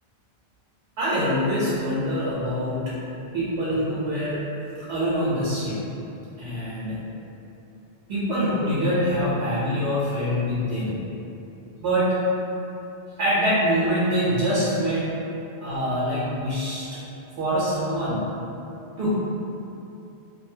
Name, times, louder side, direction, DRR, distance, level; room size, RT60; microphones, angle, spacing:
voice 1, 1.0-2.9 3.2-4.4 4.8-5.8 6.4-7.0 8.1-11.0 11.8-12.1 13.2-15.1 15.6-17.0 17.4-18.2 19.0-19.1, equal, 80° right, -10 dB, 0.9 m, -24 dB
2.6 x 2.3 x 2.7 m, 2.9 s
omnidirectional pair, 1.1 m